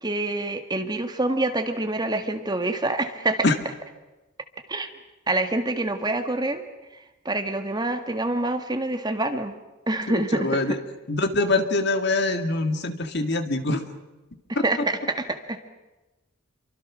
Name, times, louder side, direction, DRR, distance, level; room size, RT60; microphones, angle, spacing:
voice 1, 0.0-3.4 4.7-4.9 5.3-6.6 7.3-9.6 9.9-10.6 14.6-15.6, right 2 dB, 20° right, 7 dB, 1.7 m, -26 dB
voice 2, 10.1-10.8 11.1-13.8 14.6-14.9, left 2 dB, 55° left, 8 dB, 2.0 m, -24 dB
28.5 x 24.5 x 6.2 m, 1.1 s
head